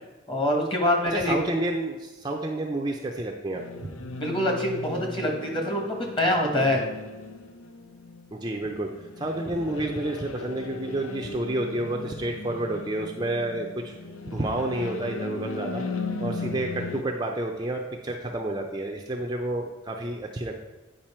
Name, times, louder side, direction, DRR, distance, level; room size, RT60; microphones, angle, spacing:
voice 1, 0.3-1.4 4.2-6.8, left 1 dB, 25° left, 1 dB, 1.3 m, -25 dB
voice 2, 1.1-4.0 8.3-8.9 9.2-14.0 14.3-15.8 16.2-20.5, right 1 dB, 20° right, 1 dB, 0.5 m, -30 dB
sound 1, 3.5-17.0, left 3 dB, 90° left, 0.7 m, -37 dB
8.9 x 5.3 x 4.3 m, 1.2 s
head